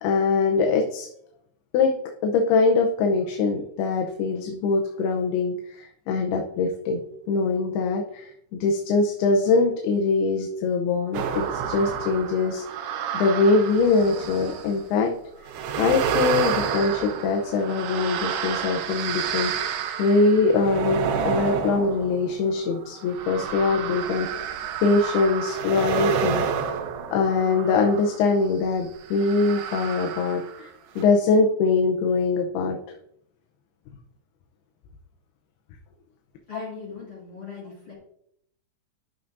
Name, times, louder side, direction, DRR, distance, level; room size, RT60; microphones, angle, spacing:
voice 1, 0.0-1.1 1.7-2.0 2.2-12.6 13.1-15.1 15.8-19.6 20.0-24.5 24.8-26.5 27.1-30.7 31.0-32.8, left 4 dB, 80° left, 2 dB, 2.8 m, -23 dB
sound 1, 11.1-14.8 15.5-28.3 29.1-30.7 31.0-31.1, right 7 dB, 85° right, 2.9 m, -29 dB
voice 2, 36.5-37.9, left 4 dB, 35° left, -4 dB, 2.7 m, -39 dB
13.5 x 5.9 x 2.6 m, 0.73 s
omnidirectional pair, 4.6 m